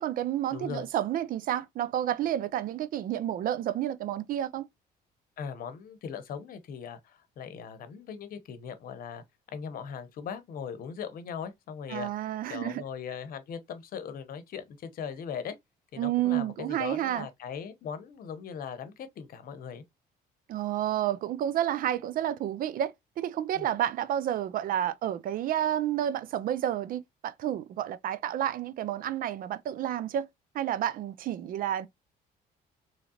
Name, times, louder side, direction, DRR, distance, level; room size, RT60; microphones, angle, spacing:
voice 1, 0.0-4.7 11.9-12.8 16.0-17.3 20.5-30.3 30.5-31.9, right 11 dB, 55° right, 0.4 m, -30 dB
voice 2, 0.5-0.9 5.4-9.2 9.5-15.6 15.9-19.8 23.5-23.7, left 7 dB, 60° left, 0.9 m, -39 dB
3.6 x 3.2 x 2.7 m
cardioid pair, 110°, 17 cm